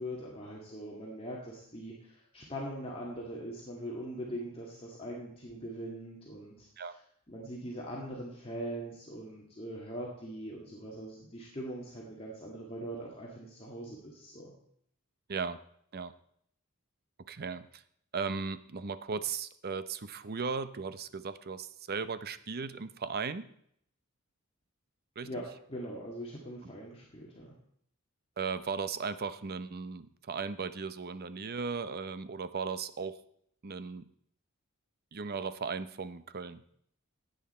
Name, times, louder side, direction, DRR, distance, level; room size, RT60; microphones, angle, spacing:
voice 1, 0.0-7.0 7.3-14.5 25.2-27.5, equal, 25° left, -4 dB, 2.1 m, -42 dB
voice 2, 17.3-17.8 18.1-23.5 25.2-25.3 28.4-33.2 33.6-34.1 35.1-36.6, right 5 dB, 45° right, 13 dB, 0.7 m, -36 dB
16.0 x 8.8 x 4.3 m, 0.69 s
head